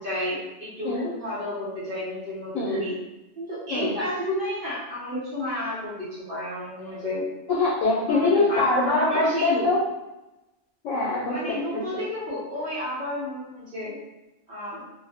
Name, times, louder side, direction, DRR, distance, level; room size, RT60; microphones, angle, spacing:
voice 1, 0.0-2.9 3.4-7.3 8.1-9.7 11.3-14.0 14.5-14.8, left 1 dB, 50° right, -8 dB, 0.9 m, -31 dB
voice 2, 7.5-9.8 10.8-11.8, left 3 dB, 80° left, -5 dB, 1.0 m, -23 dB
2.4 x 2.0 x 3.4 m, 1.0 s
omnidirectional pair, 1.3 m